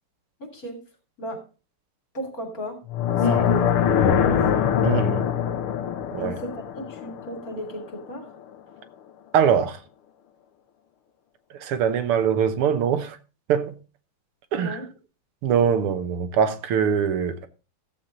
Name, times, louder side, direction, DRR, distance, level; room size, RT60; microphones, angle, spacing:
voice 1, 0.4-0.8 1.2-1.4 2.1-2.8 3.2-3.6 4.1-4.3 6.2-8.3 14.6-14.8, equal, 40° left, 3.6 m, -34 dB
sound 1, 2.9-8.0, left 8 dB, 80° left, 1.9 m, -23 dB
voice 2, 3.2-3.6 4.8-5.3 6.1-6.3 9.3-9.8 11.6-13.2 13.5-13.8 14.5-14.8 15.4-17.5, right 7 dB, 85° right, 1.9 m, -23 dB
14.5 x 7.6 x 3.9 m
omnidirectional pair, 2.4 m